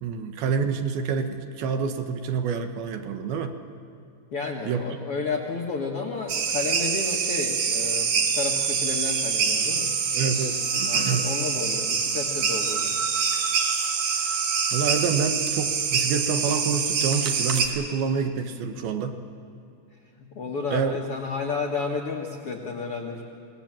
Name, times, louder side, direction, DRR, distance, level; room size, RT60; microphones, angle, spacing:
voice 1, 0.0-3.6 4.7-4.8 10.1-11.3 14.7-19.2 20.7-21.0, right 6 dB, 70° right, 6 dB, 2.7 m, -27 dB
voice 2, 4.3-9.9 10.8-13.0 20.2-23.2, left 4 dB, 80° left, 1 dB, 1.2 m, -31 dB
sound 1, 6.3-17.7, right 6 dB, 55° right, 2.5 m, -25 dB
25.5 x 19.0 x 7.4 m, 2.6 s
omnidirectional pair, 4.9 m